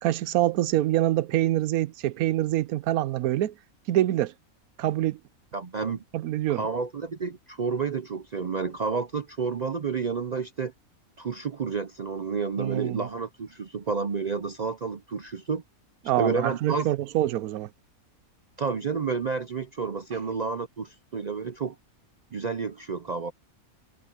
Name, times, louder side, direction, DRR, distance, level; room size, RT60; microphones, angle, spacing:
voice 1, 0.0-3.5 3.9-4.3 4.8-5.2 6.1-6.7 12.6-13.1 16.1-17.7, right 14 dB, 90° right, 1.1 m, -25 dB
voice 2, 5.5-6.0 6.5-10.7 11.2-15.6 16.2-16.9 18.6-21.8 22.3-23.3, right 5 dB, 60° right, 0.4 m, -30 dB
omnidirectional pair, 1.5 m